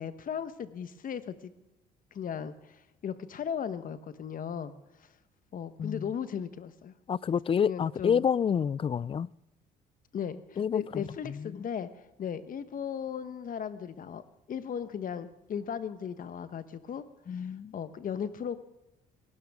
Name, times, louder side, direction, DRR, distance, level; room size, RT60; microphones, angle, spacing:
voice 1, 0.0-1.5 2.1-4.7 5.5-6.9 7.6-8.3 10.1-18.6, left 8 dB, 50° left, 1.2 m, -37 dB
voice 2, 5.8-6.1 7.1-9.3 10.6-11.6 17.3-17.7, left 7 dB, 30° left, 0.4 m, -29 dB
18.0 x 16.5 x 3.6 m
supercardioid pair, 70°, 18 cm